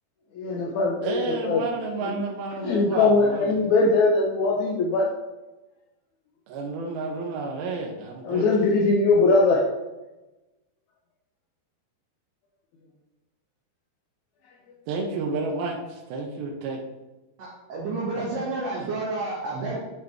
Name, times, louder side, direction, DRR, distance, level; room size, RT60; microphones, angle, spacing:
voice 1, 0.3-1.6 2.0-2.3 2.6-5.1 8.2-9.7 14.4-14.5, left 3 dB, 75° left, -1 dB, 1.7 m, -21 dB
voice 2, 1.0-3.5 6.5-8.4 14.9-16.8 18.2-18.3, right 3 dB, 80° right, 0 dB, 2.8 m, -31 dB
voice 3, 17.4-19.8, right 3 dB, 55° right, -6 dB, 2.2 m, -30 dB
10.5 x 5.2 x 3.5 m, 1.1 s
omnidirectional pair, 4.4 m